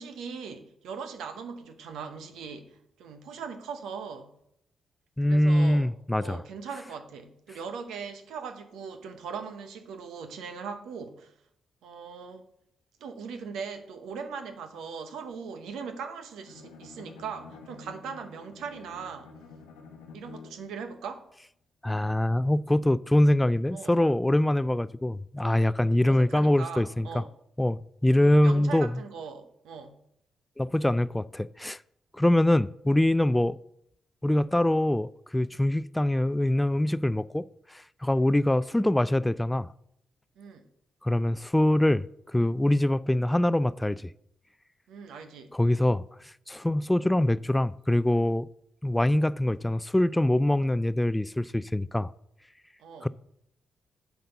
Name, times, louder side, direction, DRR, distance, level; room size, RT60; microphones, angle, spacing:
voice 1, 0.0-4.3 5.2-5.9 6.2-11.3 11.8-12.4 13.0-19.3 20.1-21.2 23.7-23.9 26.0-27.3 28.2-30.0 40.4-40.7 44.9-45.5 52.8-53.1, right 6 dB, 75° right, 0.9 m, -40 dB
voice 2, 5.2-6.4 21.8-27.2 27.6-28.9 30.6-31.8 32.1-33.6 34.2-39.7 41.0-44.1 45.5-48.5 48.8-52.1 53.0-53.1, left 1 dB, 10° left, 0.3 m, -24 dB
Bowed string instrument, 16.4-20.8, left 4 dB, 85° left, 0.9 m, -49 dB
9.2 x 4.1 x 6.7 m
hypercardioid pair, 40°, 0 cm